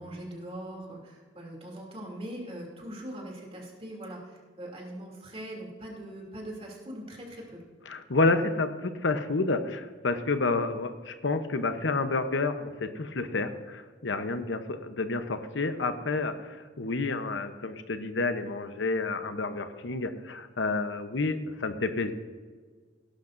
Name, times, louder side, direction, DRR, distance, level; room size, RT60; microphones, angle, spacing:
voice 1, 0.0-7.6, right 1 dB, 35° right, -1 dB, 2.8 m, -41 dB
voice 2, 7.9-22.1, left 3 dB, 90° left, 9 dB, 0.9 m, -29 dB
17.5 x 11.5 x 2.6 m, 1.5 s
head